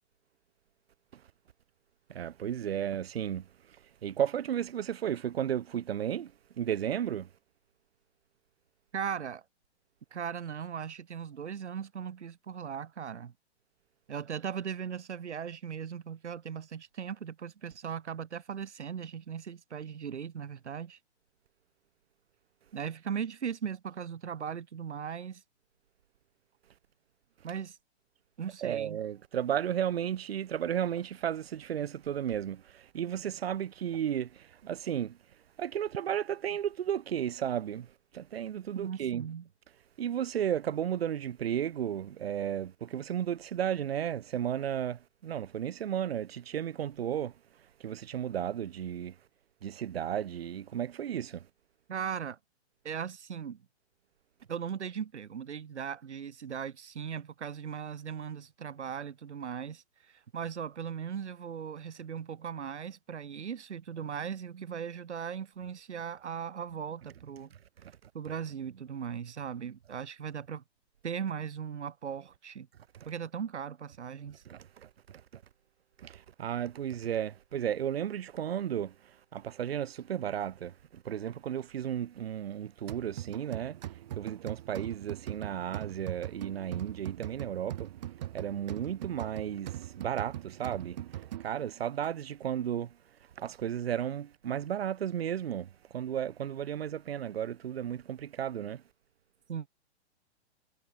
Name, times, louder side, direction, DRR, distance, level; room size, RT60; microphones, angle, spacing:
voice 1, 2.1-3.5 4.0-6.3 6.6-7.3 28.6-35.2 35.6-39.3 40.0-47.3 47.8-49.1 49.6-51.4 67.8-67.9 74.4-74.9 75.3-75.4 76.0-83.8 84.1-87.9 88.3-92.9 93.4-98.8, right 9 dB, 60° right, 1.7 m, -34 dB
voice 2, 8.9-9.4 10.1-13.3 14.1-21.0 22.7-25.4 27.4-27.8 28.4-29.0 38.7-39.5 51.9-52.4 52.8-53.6 54.5-67.5 68.1-70.6 71.0-72.7 73.0-74.4 99.5-99.7, right 7 dB, 90° right, 2.7 m, -38 dB
sound 1, 82.9-91.8, right 12 dB, 40° right, 1.6 m, -41 dB
hypercardioid pair, 170°, 34 cm